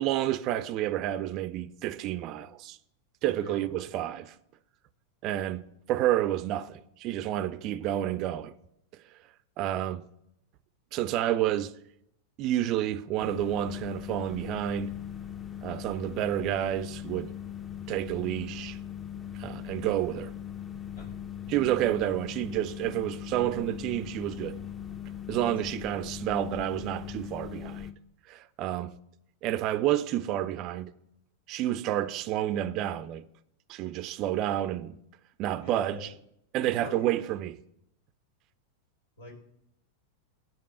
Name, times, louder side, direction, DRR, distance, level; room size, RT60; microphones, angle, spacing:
voice 1, 0.0-2.8 3.2-4.3 5.2-8.5 9.6-10.0 10.9-11.8 12.4-15.0 15.6-17.3 17.9-18.8 19.4-20.3 21.5-24.6 25.3-27.9 28.3-29.0 29.4-30.9 31.5-33.2 33.7-35.0 35.4-36.1 36.5-37.5, right 13 dB, 45° right, 0.4 m, -30 dB
voice 2, 3.2-3.7 20.9-21.1 21.4-21.5 25.3-25.6 35.6-36.1 36.6-37.1 39.2-39.3, left 2 dB, 80° left, 2.8 m, -44 dB
sound 1, 13.2-27.9, left 9 dB, 25° left, 0.8 m, -40 dB
9.1 x 5.3 x 6.8 m
hypercardioid pair, 100°, 0 cm